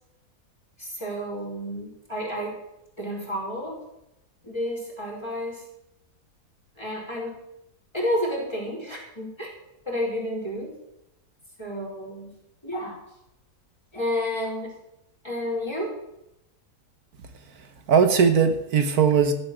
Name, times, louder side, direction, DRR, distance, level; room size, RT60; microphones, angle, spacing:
voice 1, 0.8-2.6 3.0-3.8 4.4-5.6 6.8-7.3 7.9-9.5 9.9-10.7 11.6-12.3 12.6-13.0 13.9-14.7 15.2-16.0, equal, 15° left, -3 dB, 4.7 m, -30 dB
voice 2, 17.5-19.3, right 6 dB, 75° right, 8 dB, 1.6 m, -20 dB
14.0 x 7.8 x 7.9 m, 0.84 s
omnidirectional pair, 1.6 m